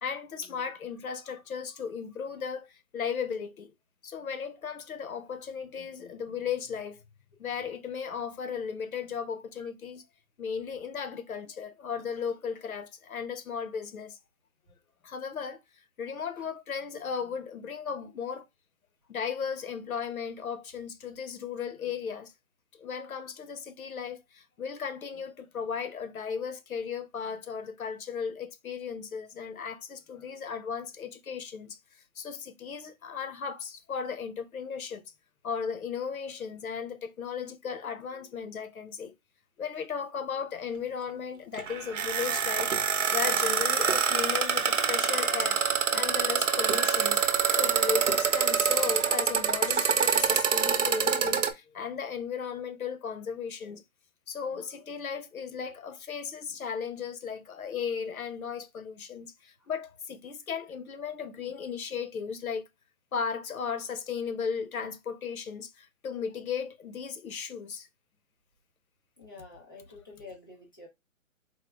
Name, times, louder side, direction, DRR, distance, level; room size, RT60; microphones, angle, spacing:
voice 1, 0.0-3.7 4.0-7.0 7.4-10.1 10.4-14.2 15.0-15.6 16.0-18.5 19.1-22.3 22.7-31.8 32.2-35.0 35.4-39.1 39.6-45.6 45.9-47.2 47.5-53.8 54.3-62.7 63.1-67.9, left 6 dB, 85° left, 0.9 m, -36 dB
sound 1, 41.5-51.5, right 6 dB, 60° right, 0.9 m, -26 dB
voice 2, 69.2-70.9, left 3 dB, 15° left, 0.7 m, -48 dB
4.6 x 2.1 x 3.4 m
hypercardioid pair, 180°, 41 cm